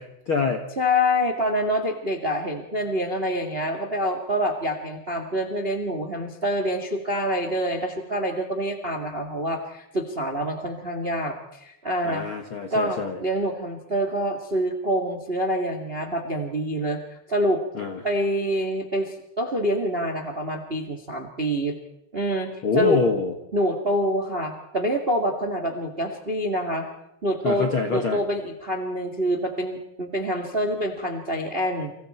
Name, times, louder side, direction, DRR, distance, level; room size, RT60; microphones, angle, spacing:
voice 1, 0.0-0.6 12.0-13.2 17.7-18.0 22.6-23.3 27.4-28.2, left 4 dB, 60° left, 4 dB, 1.3 m, -25 dB
voice 2, 0.8-12.3 12.7-17.6 18.0-21.8 22.1-23.0 23.5-26.9 27.2-31.9, equal, 35° right, 4 dB, 0.8 m, -26 dB
30.0 x 26.5 x 4.5 m, 0.84 s
omnidirectional pair, 5.1 m